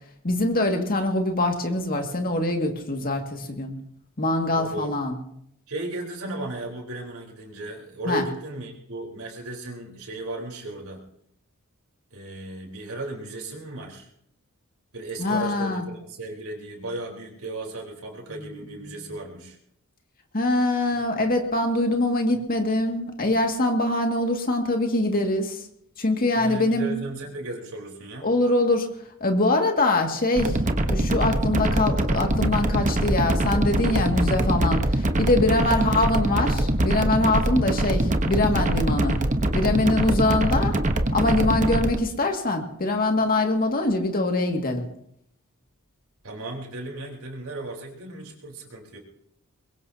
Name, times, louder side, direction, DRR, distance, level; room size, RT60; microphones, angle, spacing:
voice 1, 0.2-3.8 4.2-5.2 8.1-8.2 15.2-15.8 18.4-18.6 18.8-19.0 20.3-25.6 26.0-26.9 28.2-28.9 29.2-30.6 30.8-39.2 39.5-40.8 41.1-44.9, left 2 dB, 45° left, 3 dB, 2.1 m, -23 dB
voice 2, 4.5-5.0 5.7-11.0 12.1-14.1 14.9-19.6 26.3-28.3 35.6-36.0 46.2-49.0, right 2 dB, 85° right, 0 dB, 4.1 m, -35 dB
sound 1, 30.4-42.0, right 1 dB, 35° right, 1.1 m, -23 dB
22.5 x 22.0 x 2.8 m, 0.73 s
head